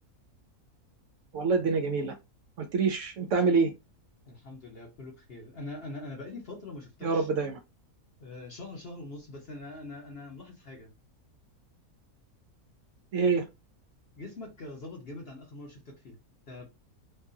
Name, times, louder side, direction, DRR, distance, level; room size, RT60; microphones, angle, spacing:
voice 1, 1.3-2.1 2.6-3.7 7.0-7.6 13.1-13.5, right 4 dB, 65° right, 0.9 m, -26 dB
voice 2, 4.3-7.3 8.2-10.9 14.2-16.2 16.5-16.7, left 2 dB, 45° left, 1.2 m, -43 dB
3.8 x 2.3 x 2.7 m
omnidirectional pair, 1.6 m